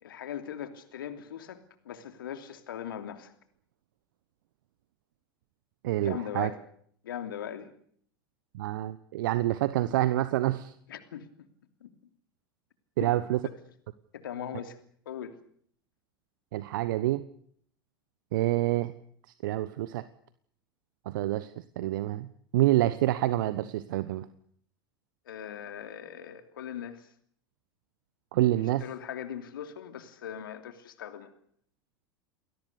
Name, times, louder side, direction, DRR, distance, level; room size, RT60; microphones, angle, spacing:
voice 1, 0.0-3.3 6.0-6.6 7.0-7.7 10.9-11.3 11.8-11.9 13.0-13.1 14.1-14.8 15.0-15.3 25.2-27.1 28.6-31.3, left 9 dB, 70° left, 8 dB, 2.9 m, -40 dB
voice 2, 5.8-6.5 8.5-10.7 13.0-13.4 16.5-17.2 18.3-18.9 19.4-20.0 21.1-22.3 22.5-24.2 28.3-28.8, right 15 dB, 60° right, 14 dB, 1.1 m, -27 dB
29.0 x 21.0 x 6.8 m, 0.63 s
figure-of-eight pair, 85°, 12 cm